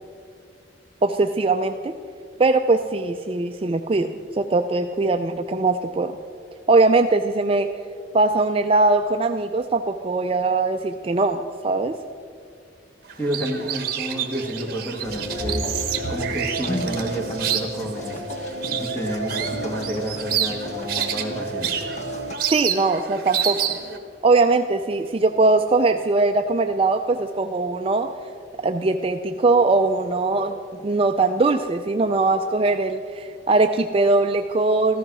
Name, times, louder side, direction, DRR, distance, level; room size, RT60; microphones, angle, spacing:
voice 1, 1.0-1.9 2.4-6.1 6.7-7.7 8.1-11.9 22.5-23.6 24.2-28.1 28.6-30.6 30.8-35.0, right 3 dB, 30° right, 6 dB, 0.4 m, -21 dB
sound 1, 13.1-24.0, right 9 dB, 50° right, 1.2 m, -29 dB
voice 2, 13.2-15.7 16.1-18.2 18.7-21.7, right 1 dB, 10° left, 1 dB, 1.8 m, -30 dB
sound 2, 15.0-22.4, equal, 40° left, 1.1 m, -31 dB
14.5 x 13.0 x 6.1 m, 2.3 s
head